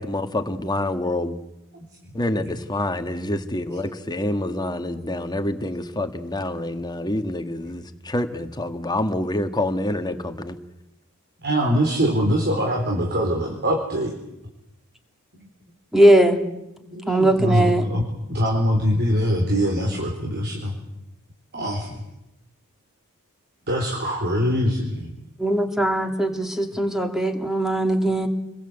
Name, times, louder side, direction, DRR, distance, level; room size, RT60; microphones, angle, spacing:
voice 1, 0.0-1.4 2.1-10.6, left 1 dB, 20° left, 1.7 m, -27 dB
voice 2, 11.4-14.1 15.3-15.5 16.8-18.0 18.3-20.7 21.5-22.0 23.7-25.1, equal, 50° right, 4.0 m, -23 dB
voice 3, 15.9-16.4 17.1-17.9 25.4-28.3, right 1 dB, ahead, 2.6 m, -19 dB
28.5 x 22.0 x 8.1 m
head